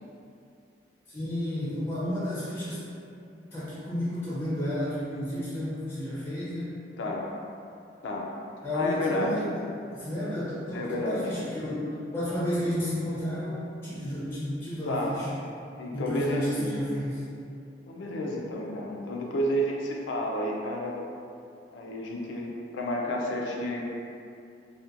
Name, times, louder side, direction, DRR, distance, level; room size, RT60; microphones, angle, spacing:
voice 1, 1.1-2.9 3.5-6.7 8.6-9.5 9.9-11.9 12.1-15.3 15.9-17.2, equal, 15° left, -9 dB, 0.4 m, -32 dB
voice 2, 7.0-7.3 8.0-8.3 8.7-9.3 10.7-11.3 14.9-15.2 15.8-16.8 17.9-20.9 21.7-23.8, left 1 dB, 85° left, -1 dB, 0.4 m, -30 dB
2.7 x 2.1 x 2.5 m, 2.5 s
head